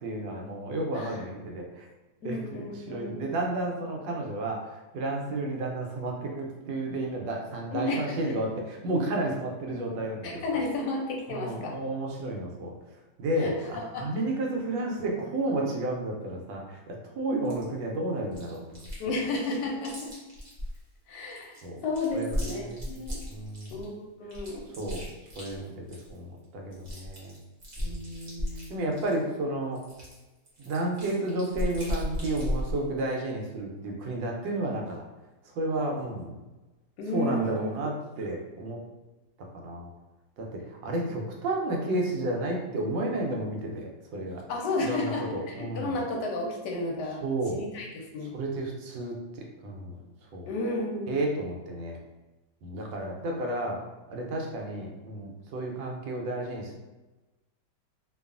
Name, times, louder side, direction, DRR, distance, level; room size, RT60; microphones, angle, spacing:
voice 1, 0.0-1.9 2.2-2.4 2.7-10.6 11.3-12.7 13.2-19.2 21.6-21.8 22.1-22.8 23.3-23.8 24.8-25.0 25.4-27.4 27.8-28.1 28.7-29.8 30.6-35.0 35.4-36.4 37.1-38.8 39.5-39.9 40.4-44.4 44.8-46.0 47.2-47.6 48.3-50.0 50.3-50.5 51.1-52.0 52.6-53.8 54.1-56.8, right 2 dB, 90° right, 0 dB, 1.3 m, -32 dB
voice 2, 2.2-3.3 7.7-8.3 10.2-11.8 13.4-14.1 17.4-17.6 19.0-20.2 21.1-21.6 21.8-23.2 23.7-24.7 27.8-28.8 37.0-37.7 41.1-41.2 44.5-47.2 47.5-48.4 50.5-51.2, left 2 dB, 75° left, 0 dB, 1.1 m, -33 dB
Chewing mastication, 17.4-17.6 18.3-19.0 19.3-20.8 21.3-23.8 24.3-26.2 26.4-26.5 26.7-29.2 29.8-32.8, equal, 50° right, 0.7 m, -35 dB
3.0 x 2.3 x 2.4 m, 1.1 s
omnidirectional pair, 2.0 m